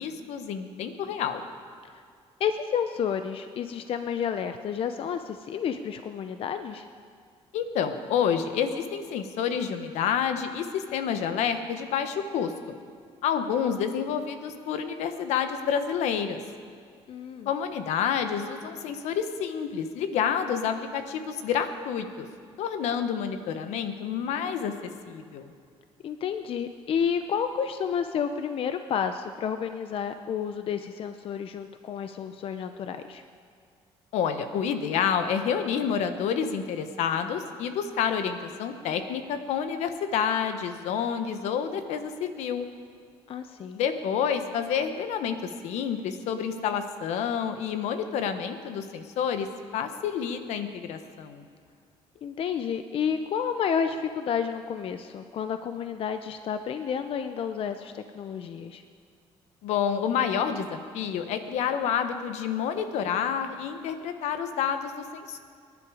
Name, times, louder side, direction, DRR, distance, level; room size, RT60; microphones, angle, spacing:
voice 1, 0.0-1.4 7.5-12.5 13.2-16.4 17.4-22.3 22.6-24.7 25.1-25.5 34.1-42.7 43.7-49.5 49.7-51.4 59.6-65.4, left 7 dB, 85° left, 8 dB, 1.2 m, -29 dB
voice 2, 2.4-6.9 17.1-17.5 26.0-33.2 43.3-43.8 52.2-58.8, left 7 dB, 55° left, 8 dB, 0.7 m, -30 dB
24.5 x 11.0 x 5.0 m, 2.2 s
cardioid pair, 100°, 11 cm